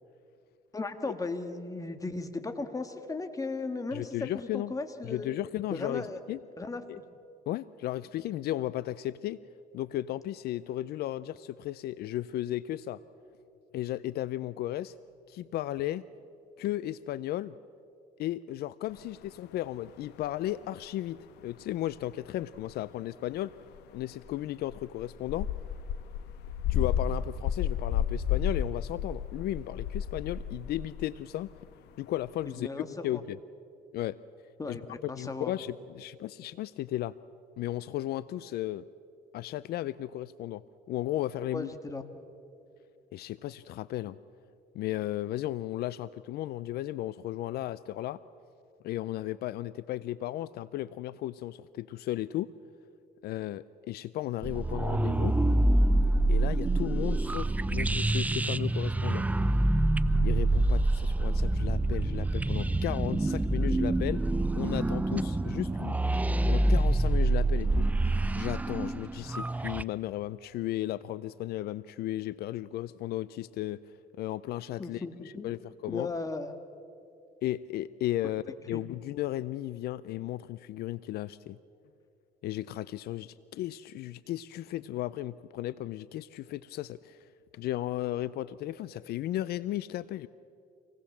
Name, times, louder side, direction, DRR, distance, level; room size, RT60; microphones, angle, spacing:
voice 1, 0.7-5.3 5.7-6.2 6.6-7.0 32.5-32.9 33.1-33.2 34.6-35.5 41.5-42.0 74.8-75.5 75.9-76.5 78.7-78.8, left 3 dB, 20° left, 8 dB, 1.7 m, -36 dB
voice 2, 3.9-4.7 5.0-6.4 6.9-7.0 7.5-9.4 9.7-13.0 13.7-14.9 15.3-16.0 16.6-17.5 18.2-25.5 26.7-31.5 32.0-32.7 33.0-33.4 33.9-34.2 34.7-34.8 35.0-37.1 37.6-38.8 39.3-40.6 40.9-41.7 43.1-44.2 44.7-48.2 48.8-52.5 53.2-55.3 56.3-59.3 60.2-64.2 64.5-66.0 66.5-67.9 68.4-73.8 74.2-75.0 75.4-76.1 77.4-81.6 82.4-87.2 87.5-90.3, left 14 dB, 70° left, 17 dB, 0.5 m, -35 dB
sound 1, 19.0-19.1 22.6-22.7 23.7-24.3 24.6-31.2 31.6-31.7 32.3-32.4, left 8 dB, 85° left, 1.2 m, -32 dB
sound 2, 54.4-69.8, right 2 dB, 10° right, 0.5 m, -26 dB
26.0 x 19.0 x 7.3 m, 2.6 s
cardioid pair, 110°, 17 cm